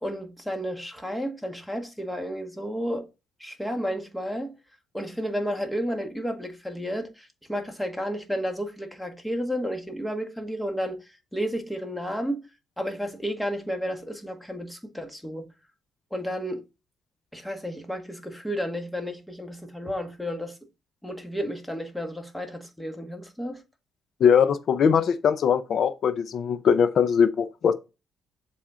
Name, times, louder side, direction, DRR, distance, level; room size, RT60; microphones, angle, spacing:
voice 1, 0.0-3.1 3.4-4.5 4.9-12.5 12.8-15.5 16.1-16.6 17.3-20.6 21.0-23.6, equal, 5° left, 1.6 m, -32 dB
voice 2, 24.2-27.7, left 7 dB, 60° left, 0.6 m, -21 dB
7.3 x 4.2 x 3.7 m
cardioid pair, 90°, 0 cm